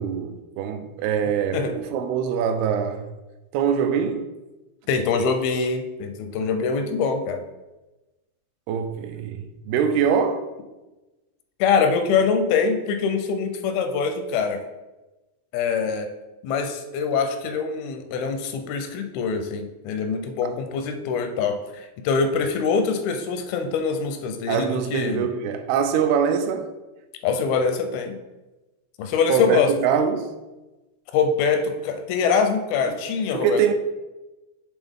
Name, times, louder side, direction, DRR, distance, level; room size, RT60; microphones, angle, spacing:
voice 1, 0.0-3.1 3.5-4.4 8.7-10.5 20.4-20.5 24.5-26.7 29.3-30.3 33.3-33.7, right 7 dB, 90° right, 2.5 m, -23 dB
voice 2, 4.9-7.4 11.6-14.6 15.5-16.1 16.4-25.3 27.2-28.2 29.0-29.7 31.1-33.7, left 5 dB, 85° left, 2.4 m, -24 dB
8.2 x 3.4 x 3.5 m
omnidirectional pair, 4.4 m